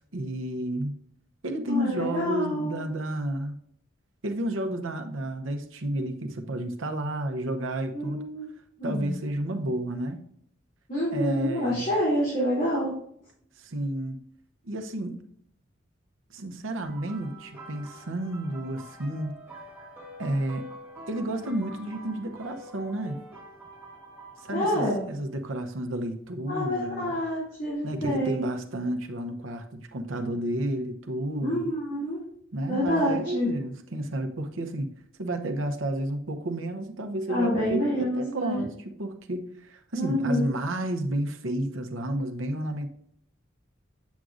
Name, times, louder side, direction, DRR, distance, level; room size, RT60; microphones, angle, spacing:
voice 1, 0.1-0.9 1.4-3.5 4.2-8.2 8.8-10.2 11.1-11.9 13.6-14.2 14.6-15.2 16.3-19.3 20.2-20.6 21.1-23.2 24.4-27.2 27.8-31.7 32.5-34.9 35.2-42.9, right 1 dB, 80° right, 5 dB, 0.8 m, -31 dB
voice 2, 1.7-2.8 7.9-8.5 8.8-9.1 10.9-12.9 24.5-25.0 26.5-28.5 31.4-32.2 32.7-33.5 37.3-38.7 39.9-40.4, equal, 45° left, -8 dB, 2.7 m, -27 dB
sound 1, 16.8-25.1 26.0-26.2 28.0-28.1, right 1 dB, 10° right, 1.8 m, -46 dB
8.2 x 6.2 x 2.5 m, 0.67 s
head